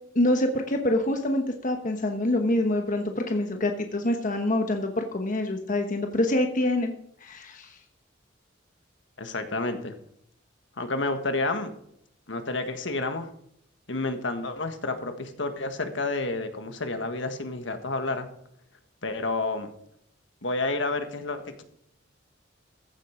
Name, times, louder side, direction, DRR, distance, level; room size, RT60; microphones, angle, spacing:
voice 1, 0.1-6.9 7.2-7.8, left 1 dB, 40° left, 4 dB, 1.1 m, -26 dB
voice 2, 9.2-9.9 10.8-11.7 12.3-13.3 13.9-18.3 19.0-19.7 20.4-21.6, left 2 dB, 70° left, 7 dB, 1.6 m, -30 dB
15.0 x 7.7 x 5.0 m, 0.71 s
head